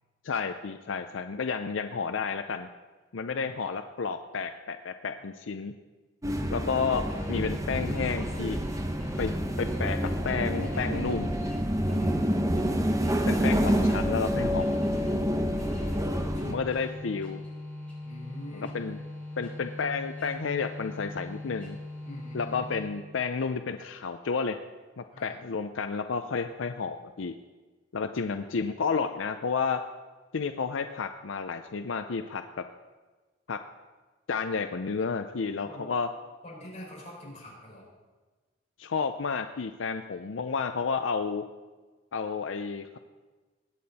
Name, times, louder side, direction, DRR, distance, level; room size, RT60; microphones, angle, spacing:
voice 1, 0.2-2.7 3.1-5.7 6.5-8.6 9.2-11.3 13.3-14.7 16.4-17.4 18.5-19.0 19.4-21.8 22.3-24.6 25.0-27.4 27.9-29.8 30.3-32.6 33.5-33.6 34.3-36.1 38.8-41.5 42.1-43.0, left 5 dB, 85° left, 8 dB, 0.5 m, -31 dB
voice 2, 3.3-3.6 6.3-6.6 11.9-12.3 15.8-17.1 18.0-18.7 22.0-22.7 25.1-25.4 35.6-35.9 36.4-37.9, equal, 40° left, -5 dB, 5.4 m, -45 dB
sound 1, 6.2-16.5, equal, 15° right, 0.9 m, -28 dB
sound 2, 7.0-23.2, left 1 dB, 5° left, 3.7 m, -41 dB
20.5 x 8.7 x 4.2 m, 1.3 s
head